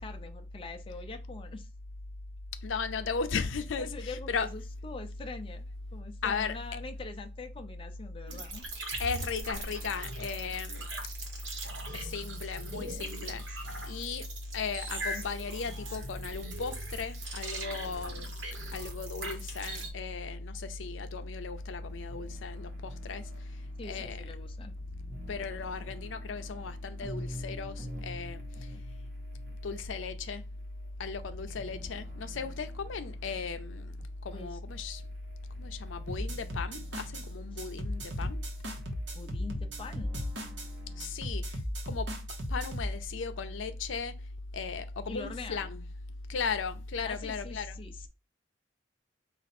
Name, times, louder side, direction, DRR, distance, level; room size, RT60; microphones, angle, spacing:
voice 1, 0.0-1.7 3.8-5.7 5.9-8.6 23.8-24.7 34.3-34.6 37.5-37.6 39.1-40.1 40.9-41.2 45.1-45.7 47.0-48.1, left 3 dB, 30° left, 0.4 m, -44 dB
voice 2, 2.6-4.5 6.2-6.5 9.0-10.8 11.9-13.4 13.9-14.3 14.5-18.3 18.7-23.3 23.8-24.2 25.3-28.7 29.6-30.4 31.0-34.0 34.2-35.0 35.6-38.4 41.0-41.6 41.8-42.1 42.5-44.1 44.5-45.8 46.3-47.7, left 4 dB, 85° left, 0.5 m, -36 dB
sound 1, 8.3-19.9, right 2 dB, 85° right, 1.3 m, -41 dB
sound 2, 21.5-41.1, left 1 dB, 45° right, 1.1 m, -49 dB
sound 3, 36.1-37.3 37.6-40.7 41.0-42.9, equal, 65° right, 1.1 m, -36 dB
4.2 x 2.5 x 4.1 m
head